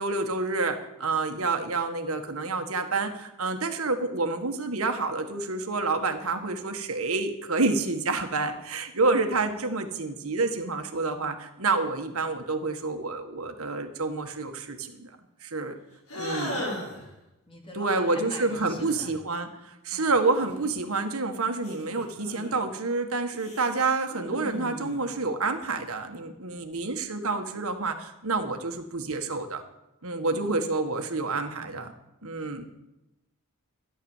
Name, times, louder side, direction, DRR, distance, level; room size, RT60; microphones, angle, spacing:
voice 1, 0.0-15.1 15.4-15.7 16.1-16.5 17.7-29.6 30.0-31.9 32.2-32.6, right 3 dB, 65° right, 5 dB, 1.7 m, -28 dB
sound 1, 16.1-17.1 18.4-19.1 20.3-21.1 21.6-22.6 23.3-25.1, equal, 85° left, 6.2 m, -37 dB
voice 2, 16.3-17.1 17.5-19.1 19.9-20.2 30.3-30.6 32.4-32.7, left 1 dB, 25° left, 2 dB, 2.5 m, -44 dB
14.0 x 11.0 x 7.3 m, 0.90 s
head